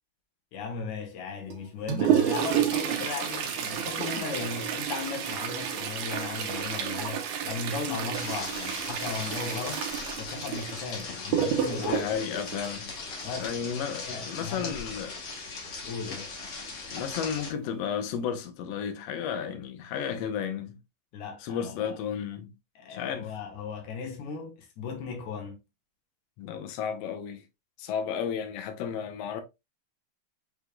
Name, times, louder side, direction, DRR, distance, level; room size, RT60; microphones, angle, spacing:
voice 1, 0.5-9.9 10.2-12.0 13.2-14.8 15.8-16.3 21.1-22.0 22.8-25.6, left 5 dB, 90° left, 2.7 m, -37 dB
Toilet flush, 1.5-13.5 15.3-15.4 15.8-15.9 16.7-16.8 17.4-17.7 18.1-18.2, right 8 dB, 75° right, 2.2 m, -30 dB
sound 1, 8.1-17.5, left 4 dB, 50° left, 1.5 m, -39 dB
voice 2, 11.8-12.9 13.4-15.1 16.9-20.8 21.4-22.5 22.9-23.3 26.4-27.4 27.8-29.4, left 7 dB, 70° left, 1.7 m, -33 dB
6.1 x 3.4 x 2.2 m
omnidirectional pair, 3.4 m